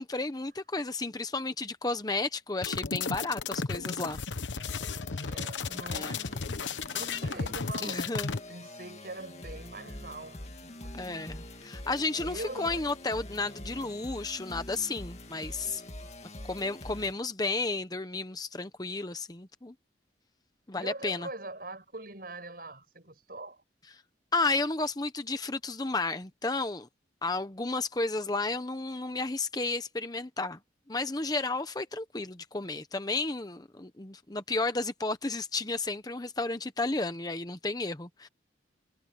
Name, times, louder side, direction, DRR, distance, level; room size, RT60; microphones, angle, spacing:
voice 1, 0.0-4.2 5.9-6.1 7.8-8.3 10.9-15.8 16.5-19.7 20.7-21.3 24.3-26.9 27.2-30.6 30.9-38.3, left 3 dB, 20° left, 0.9 m, -32 dB
sound 1, 2.6-8.4, left 4 dB, 85° left, 1.0 m, -34 dB
sound 2, 4.6-17.1, left 1 dB, 35° left, 2.2 m, -45 dB
voice 2, 5.2-6.5 6.9-11.4 12.2-13.0 20.7-23.6, right 2 dB, 50° right, 7.7 m, -43 dB
head